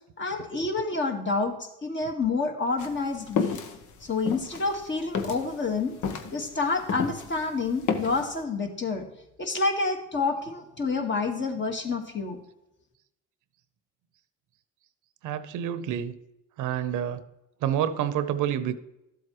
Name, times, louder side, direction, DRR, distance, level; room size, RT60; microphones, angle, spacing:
voice 1, 0.2-3.6 4.0-5.9 6.3-9.1 9.4-12.4, left 3 dB, 40° left, 4 dB, 1.7 m, -28 dB
sound 1, 2.8-7.4 7.7-8.3, left 6 dB, 75° left, 1.1 m, -31 dB
voice 2, 15.2-16.1 16.6-17.2 17.6-18.7, right 10 dB, 90° right, 12 dB, 0.8 m, -28 dB
12.5 x 7.7 x 3.1 m, 0.89 s
cardioid pair, 90°, 30 cm